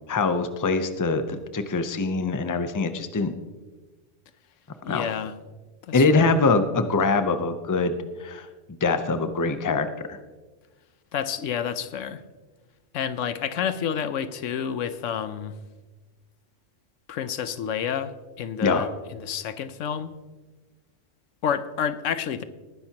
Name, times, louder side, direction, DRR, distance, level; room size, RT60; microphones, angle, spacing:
voice 1, 0.1-3.3 4.9-5.1 5.9-8.5 8.8-10.2 18.6-18.9, left 3 dB, 20° left, 9 dB, 0.5 m, -23 dB
voice 2, 4.8-5.3 5.8-6.3 11.1-12.2 12.9-15.6 17.1-20.1 21.4-22.4, left 8 dB, 85° left, 12 dB, 1.0 m, -29 dB
19.5 x 10.5 x 2.9 m, 1.3 s
omnidirectional pair, 1.3 m